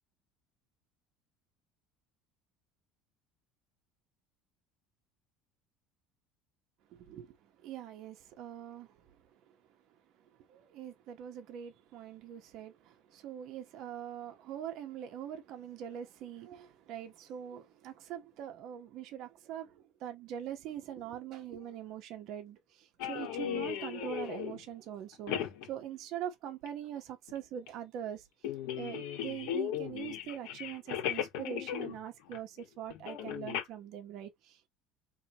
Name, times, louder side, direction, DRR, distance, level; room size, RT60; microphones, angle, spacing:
voice 1, 6.9-7.4 7.6-9.6 10.5-28.2 28.7-34.7, right 10 dB, 50° right, 1.0 m, -43 dB
sound 1, 23.0-24.6 25.1-25.7 26.7-26.8 27.3-27.4 27.7-27.8 28.4-32.0 32.3-32.6 32.9-33.6, left 10 dB, 75° left, 1.5 m, -37 dB
4.5 x 3.2 x 2.9 m
cardioid pair, 170°, 0 cm